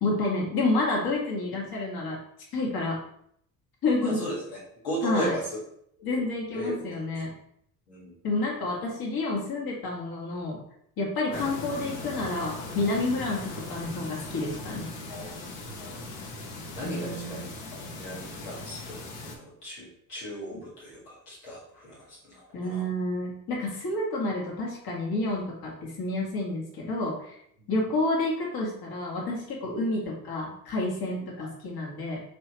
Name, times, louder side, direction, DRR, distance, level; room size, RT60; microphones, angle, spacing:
voice 1, 0.0-2.2 2.5-3.0 3.8-4.2 5.0-5.3 6.0-7.3 8.2-10.6 11.0-14.9 16.8-17.4 22.5-27.4 27.7-32.2, left 2 dB, 50° left, -2 dB, 1.7 m, -29 dB
voice 2, 4.0-5.6 6.0-6.2 6.5-7.0 7.9-8.1 11.3-11.5 15.1-16.0 16.7-17.5 17.7-22.9 27.6-28.0 31.4-31.5, equal, 90° left, -7 dB, 1.7 m, -37 dB
sound 1, 11.3-19.4, left 2 dB, 70° left, 1.0 m, -39 dB
5.2 x 3.3 x 3.0 m, 0.69 s
hypercardioid pair, 55°, 46 cm